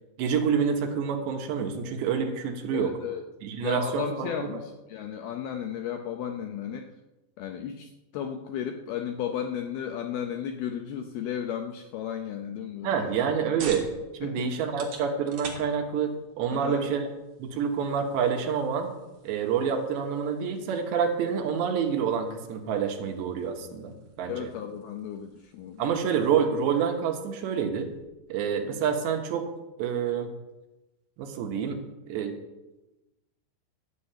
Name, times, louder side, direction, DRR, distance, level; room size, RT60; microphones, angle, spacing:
voice 1, 0.2-2.9 3.4-4.3 12.8-13.9 14.2-17.0 17.4-18.9 19.2-23.9 24.2-24.5 25.8-27.9 28.3-29.5 29.8-30.3 31.2-31.8 32.1-32.3, right 7 dB, 75° right, 4 dB, 3.5 m, -27 dB
voice 2, 2.7-3.3 3.6-6.9 7.4-13.1 14.2-14.5 16.5-16.8 24.3-26.0, left 9 dB, 80° left, 5 dB, 2.3 m, -34 dB
sound 1, 13.0-28.1, right 5 dB, 50° right, 3.0 m, -49 dB
13.0 x 7.4 x 8.7 m, 1.0 s
omnidirectional pair, 5.2 m